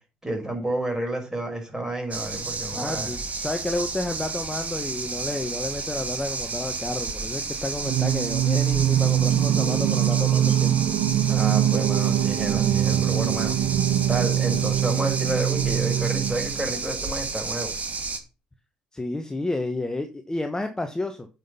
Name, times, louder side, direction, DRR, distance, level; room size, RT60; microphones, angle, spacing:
voice 1, 0.2-3.1 11.3-13.6 14.1-17.7, right 1 dB, 15° right, 2 dB, 5.8 m, -30 dB
sound 1, 2.1-18.2, right 4 dB, 35° right, 2.5 m, -32 dB
voice 2, 2.7-10.7 18.9-21.3, left 2 dB, 15° left, 6 dB, 1.3 m, -30 dB
Singing, 7.8-16.7, right 10 dB, 65° right, 0.9 m, -23 dB
8.9 x 6.2 x 5.6 m, 0.32 s
hypercardioid pair, 50°, 4 cm